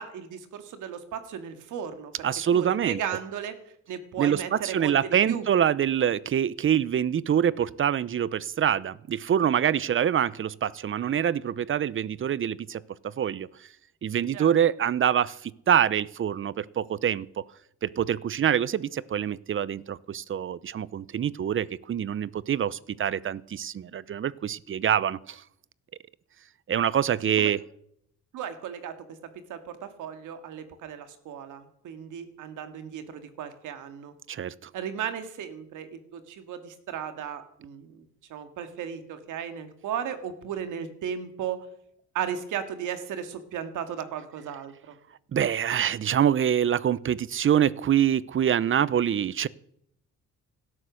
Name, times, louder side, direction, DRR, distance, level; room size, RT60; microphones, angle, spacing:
voice 1, 0.0-2.3 2.5-3.6 3.9-5.5 14.3-14.5 27.4-27.5 28.3-29.2 29.5-34.1 34.7-38.0 38.3-41.7 42.1-45.0, right 8 dB, 85° right, 8 dB, 2.2 m, -35 dB
voice 2, 2.2-3.0 4.2-12.8 13.2-13.5 14.0-17.4 17.8-25.4 26.7-27.6 34.3-34.7 45.3-49.5, right 9 dB, 40° right, 20 dB, 0.7 m, -25 dB
17.0 x 12.5 x 6.4 m, 0.72 s
cardioid pair, 90°, 30 cm